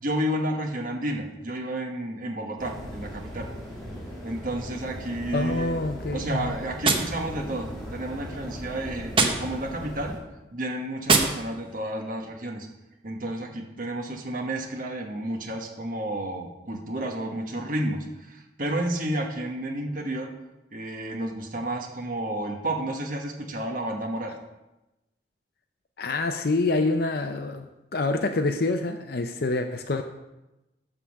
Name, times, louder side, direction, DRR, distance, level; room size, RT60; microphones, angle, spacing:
voice 1, 0.0-3.5 4.2-5.8 6.1-10.2 10.5-12.7 13.0-20.3 20.7-24.3, right 1 dB, 45° right, 1 dB, 1.2 m, -31 dB
sound 1, 2.6-10.2, equal, 5° left, 2.3 m, -38 dB
voice 2, 5.3-6.5 26.0-27.6 27.9-30.0, left 2 dB, 55° left, 6 dB, 0.5 m, -26 dB
Gunshot gunfire, 6.8-7.9 9.1-9.9 11.0-11.9, right 4 dB, 30° right, 0.8 m, -26 dB
11.5 x 3.8 x 7.2 m, 0.98 s
head